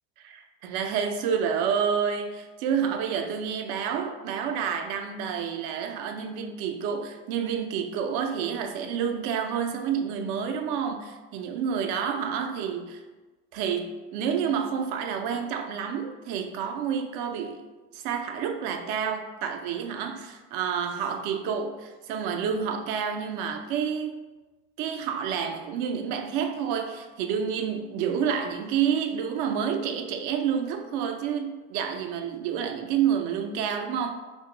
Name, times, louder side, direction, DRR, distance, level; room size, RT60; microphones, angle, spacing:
voice 1, 0.2-13.0 13.5-17.6 17.9-24.2 24.8-34.1, right 7 dB, 70° right, 0.5 m, -29 dB
2.8 x 2.3 x 3.8 m
hypercardioid pair, 70°, 31 cm